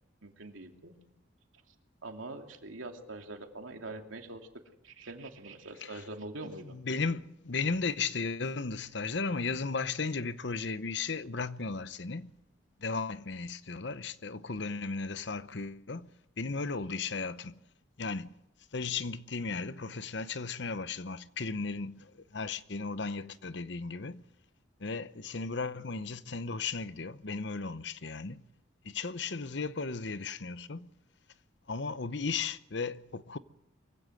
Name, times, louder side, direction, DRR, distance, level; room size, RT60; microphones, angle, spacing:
voice 1, 0.2-0.9 2.0-4.5 4.8-6.8, right 2 dB, 80° right, 2.7 m, -44 dB
voice 2, 6.7-12.3 12.8-16.1 16.4-17.6 18.0-18.3 18.7-24.2 24.8-28.4 28.8-30.9 31.7-33.4, left 4 dB, 60° left, 0.8 m, -35 dB
23.5 x 16.0 x 7.8 m
head